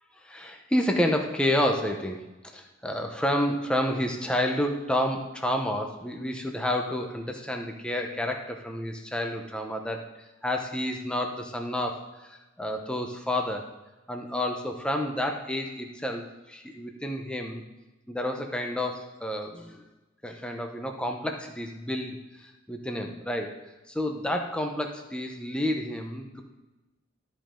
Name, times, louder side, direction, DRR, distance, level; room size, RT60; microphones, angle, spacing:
voice 1, 0.2-2.2 2.5-12.3 12.6-13.7 14.1-17.6 18.1-19.8 20.2-23.5 23.9-26.4, left 1 dB, 5° left, 3 dB, 0.8 m, -30 dB
13.0 x 5.2 x 3.7 m, 1.1 s
head